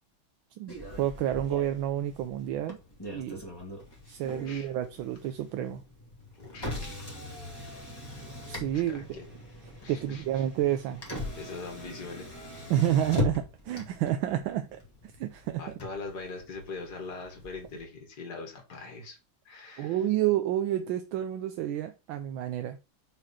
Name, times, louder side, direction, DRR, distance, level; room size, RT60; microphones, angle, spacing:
voice 1, 0.6-2.8 3.1-3.4 4.1-5.8 8.5-9.2 9.9-11.0 12.7-15.7 19.8-22.8, right 12 dB, 75° right, 1.4 m, -30 dB
Motor vehicle (road), 0.7-17.8, left 1 dB, 10° left, 2.2 m, -40 dB
voice 2, 4.3-4.7 6.4-7.0 8.9-9.3 9.8-10.2 11.4-12.7 15.6-19.2 19.5-20.0, left 3 dB, 50° left, 2.6 m, -42 dB
5.8 x 4.9 x 5.5 m
omnidirectional pair, 2.3 m